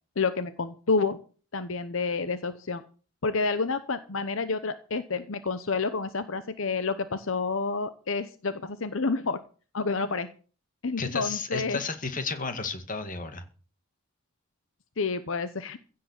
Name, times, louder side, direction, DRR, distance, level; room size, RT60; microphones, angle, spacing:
voice 1, 0.2-1.2 1.5-2.8 3.2-9.4 9.7-10.3 10.8-11.8 15.0-15.8, left 4 dB, 65° left, 12 dB, 0.9 m, -29 dB
voice 2, 11.0-13.4, left 4 dB, 40° left, 9 dB, 2.0 m, -32 dB
16.0 x 7.6 x 7.3 m, 0.40 s
head